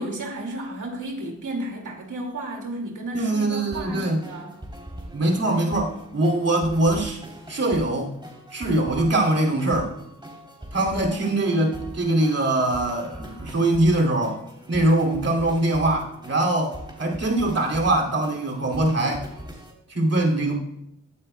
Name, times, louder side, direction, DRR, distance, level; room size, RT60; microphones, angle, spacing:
voice 1, 0.0-4.5, right 1 dB, 80° right, 1 dB, 2.3 m, -33 dB
voice 2, 3.1-4.2 5.1-7.2 7.5-8.1 8.5-9.9 10.7-14.4 14.7-19.3 19.9-20.6, right 2 dB, 50° right, 0 dB, 2.6 m, -22 dB
sound 1, 3.7-19.7, right 1 dB, 15° right, 3.3 m, -41 dB
15.5 x 9.2 x 2.2 m, 0.80 s
cardioid pair, 55°, 31 cm